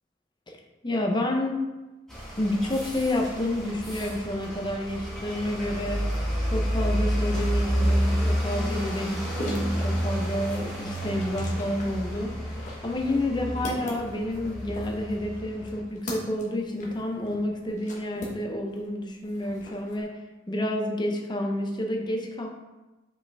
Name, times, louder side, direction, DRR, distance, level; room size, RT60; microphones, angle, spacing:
voice 1, 0.8-1.6 2.4-6.1 6.5-22.5, left 1 dB, 25° left, 1 dB, 0.7 m, -29 dB
sound 1, 2.1-15.8, equal, 5° left, 1.5 m, -30 dB
sound 2, 9.3-18.9 19.2-20.0, left 1 dB, 40° left, 1.1 m, -41 dB
5.4 x 5.0 x 3.5 m, 1.1 s
head